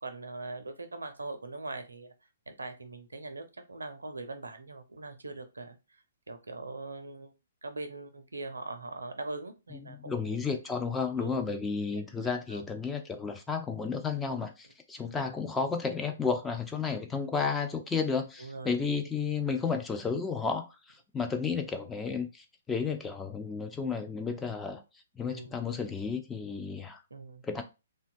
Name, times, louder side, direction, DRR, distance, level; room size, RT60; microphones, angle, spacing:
voice 1, 0.0-2.1 2.5-5.8 6.3-7.3 7.6-10.4 11.2-11.4 12.2-12.6 18.4-18.7 25.3-25.5 27.1-27.4, right 3 dB, 75° right, 0.5 m, -41 dB
voice 2, 9.7-24.8 25.2-27.0 27.4-27.6, left 5 dB, 10° left, 0.4 m, -32 dB
2.7 x 2.2 x 2.5 m
figure-of-eight pair, 120°, 0 cm